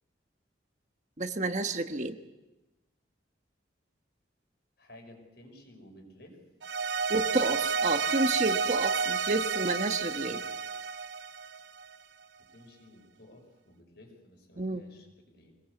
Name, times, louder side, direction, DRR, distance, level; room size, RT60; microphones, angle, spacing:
voice 1, 1.2-2.2 7.1-10.4 14.6-14.8, right 2 dB, 40° right, 7 dB, 1.2 m, -30 dB
voice 2, 4.8-6.4 12.4-15.5, left 1 dB, 60° left, 4 dB, 6.1 m, -54 dB
sound 1, 6.6-11.9, right 5 dB, 80° right, 0.8 m, -30 dB
25.0 x 20.5 x 8.3 m, 1.0 s
head